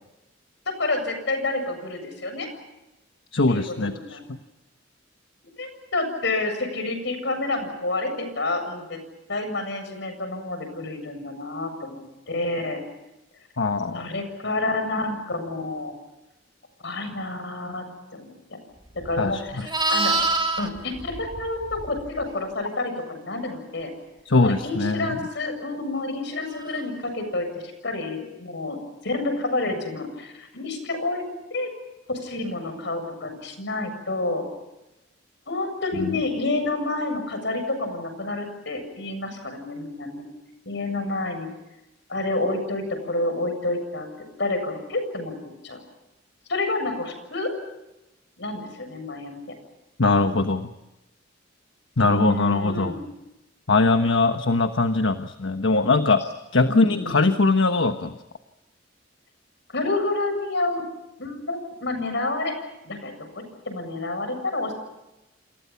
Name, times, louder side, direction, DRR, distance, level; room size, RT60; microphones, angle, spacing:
voice 1, 0.7-2.5 3.5-4.2 5.6-9.0 9.3-12.0 12.3-12.8 13.9-15.9 16.8-17.8 18.1-18.6 18.9-20.1 20.6-23.9 24.4-28.8 29.0-31.7 32.1-34.4 35.5-40.3 40.7-41.5 42.1-44.1 44.4-45.4 45.6-45.8 46.5-47.5 48.4-49.4 52.0-53.0 56.7-57.4 59.7-60.9 61.2-62.6 62.8-64.7, left 2 dB, 65° left, 7 dB, 7.5 m, -29 dB
voice 2, 3.3-4.4 13.6-14.1 19.2-19.7 24.2-25.2 35.9-36.2 50.0-50.7 52.0-52.9 53.7-56.2 56.5-58.2, left 3 dB, 85° left, 8 dB, 1.3 m, -21 dB
Livestock farm animals working animals, 19.0-22.3 26.6-26.8, right 2 dB, 25° right, 2.1 m, -27 dB
29.0 x 28.0 x 5.8 m, 0.96 s
head